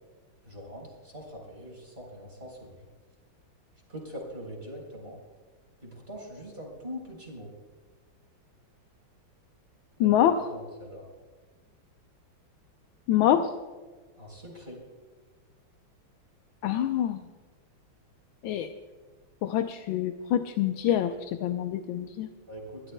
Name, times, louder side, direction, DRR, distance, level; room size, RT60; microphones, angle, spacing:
voice 1, 0.4-2.9 3.9-5.2 5.8-7.5 10.0-11.1 14.2-14.8 22.5-22.9, equal, 30° right, -1 dB, 4.1 m, -42 dB
voice 2, 10.0-10.4 13.1-13.5 16.6-17.2 18.4-18.7 19.4-22.3, left 11 dB, 80° left, 6 dB, 1.5 m, -25 dB
29.5 x 13.0 x 2.3 m, 1.4 s
omnidirectional pair, 2.2 m